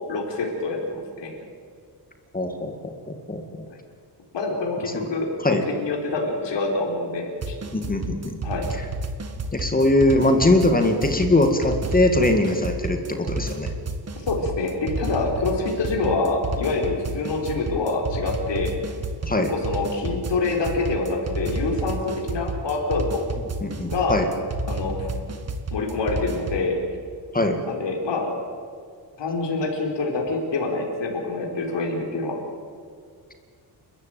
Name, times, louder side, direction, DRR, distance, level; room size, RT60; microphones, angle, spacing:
voice 1, 0.1-1.3 3.7-3.8 4.3-7.5 8.4-8.7 14.2-18.7 19.4-23.2 23.9-24.2 24.7-25.1 25.7-26.7 27.7-28.3 29.2-32.4, left 3 dB, 85° left, 0 dB, 4.6 m, -26 dB
voice 2, 2.3-2.8 3.1-3.4 4.9-5.0 5.4-5.6 7.7-8.4 9.5-13.7 19.2-19.5 23.6-24.3 27.3-27.6, left 1 dB, 20° left, 5 dB, 2.0 m, -21 dB
sound 1, 7.4-26.7, right 2 dB, 35° right, 1.8 m, -31 dB
29.5 x 14.0 x 9.1 m, 2.2 s
wide cardioid pair, 150°, 42 cm